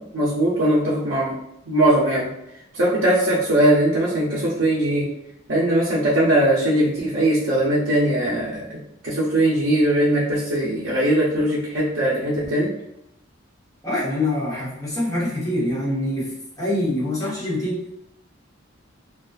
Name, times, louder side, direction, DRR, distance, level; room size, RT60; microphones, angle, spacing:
voice 1, 0.0-1.4 1.7-2.3 2.7-5.1 5.5-12.7, right 1 dB, 75° right, -7 dB, 0.6 m, -20 dB
voice 2, 13.8-17.8, left 1 dB, 20° left, -7 dB, 0.9 m, -25 dB
2.3 x 2.3 x 2.3 m, 0.84 s
head